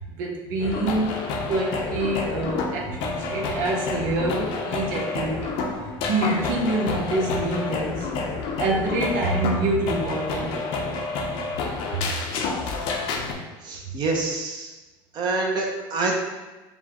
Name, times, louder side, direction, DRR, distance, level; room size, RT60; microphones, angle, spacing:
voice 1, 0.2-1.2 1.5-5.5 6.1-8.1 8.6-11.0 11.9-12.0, right 2 dB, 85° right, -2 dB, 1.0 m, -26 dB
sound 1, 0.6-13.3, left 4 dB, 60° left, 0.7 m, -29 dB
voice 2, 13.6-14.7 15.1-16.1, right 3 dB, 40° right, 0 dB, 0.7 m, -26 dB
7.1 x 2.4 x 2.9 m, 1.1 s
cardioid pair, 135°, 11 cm